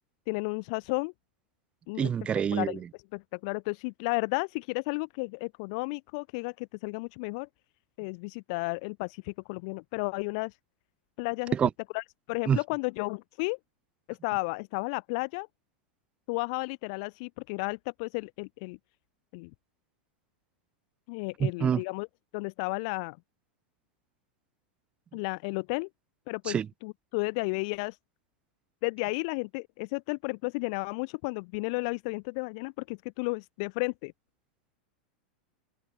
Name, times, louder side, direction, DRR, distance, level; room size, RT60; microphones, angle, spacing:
voice 1, 0.3-1.1 1.9-2.1 2.5-2.8 3.1-7.5 8.0-10.6 11.2-11.6 11.9-13.6 14.1-15.5 16.3-18.8 19.3-19.5 21.1-22.1 22.3-23.2 25.1-25.9 26.3-28.0 28.8-34.1, left 31 dB, 45° left, 3.7 m, -33 dB
voice 2, 2.0-2.8 11.5-11.7 12.5-12.6 21.4-21.8 26.5-26.7, right 8 dB, 25° right, 6.6 m, -26 dB
open air
figure-of-eight pair, 90°, 5 cm